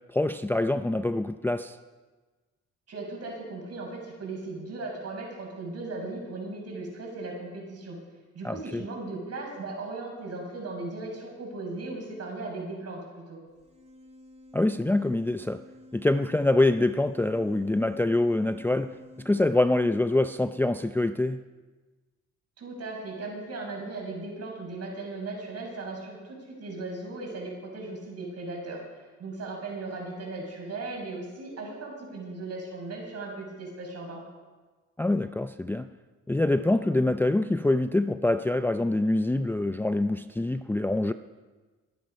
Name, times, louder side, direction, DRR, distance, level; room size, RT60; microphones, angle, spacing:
voice 1, 0.1-1.8 8.4-8.8 14.5-15.6 15.9-18.9 19.3-21.4 35.0-35.9 36.3-41.1, left 2 dB, 5° left, 0.5 m, -25 dB
voice 2, 2.9-8.0 8.3-13.4 22.6-28.8 29.2-34.2, right 3 dB, 55° right, 6.0 m, -37 dB
sound 1, 13.5-19.3, left 1 dB, 20° right, 2.5 m, -51 dB
22.0 x 10.0 x 5.3 m
cardioid pair, 90°, 30 cm